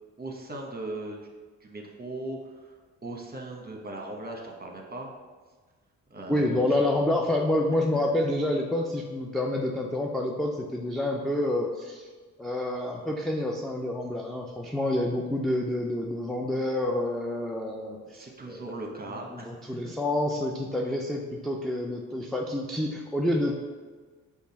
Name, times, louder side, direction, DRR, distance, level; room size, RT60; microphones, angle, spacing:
voice 1, 0.2-1.2 1.6-2.7 3.0-5.1 6.1-6.7 7.9-8.0 18.1-19.5, right 2 dB, 25° right, 1 dB, 1.0 m, -38 dB
voice 2, 6.3-12.1 12.4-18.8 19.3-23.6, left 1 dB, ahead, -1 dB, 0.4 m, -28 dB
5.3 x 2.4 x 4.0 m, 1.4 s
supercardioid pair, 55°, 35 cm